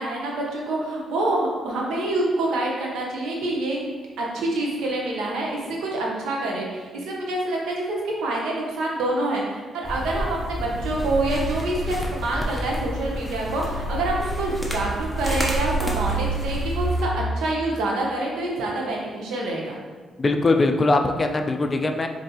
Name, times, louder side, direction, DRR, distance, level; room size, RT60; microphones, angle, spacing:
voice 1, 0.0-3.8 4.2-19.8, right 2 dB, 85° right, -2 dB, 0.8 m, -26 dB
sound 1, 9.8-17.0, right 1 dB, 5° right, 0.7 m, -28 dB
voice 2, 20.2-22.1, left 2 dB, 35° left, 6 dB, 0.3 m, -21 dB
4.4 x 2.6 x 2.8 m, 1.4 s
cardioid pair, 75°, 0 cm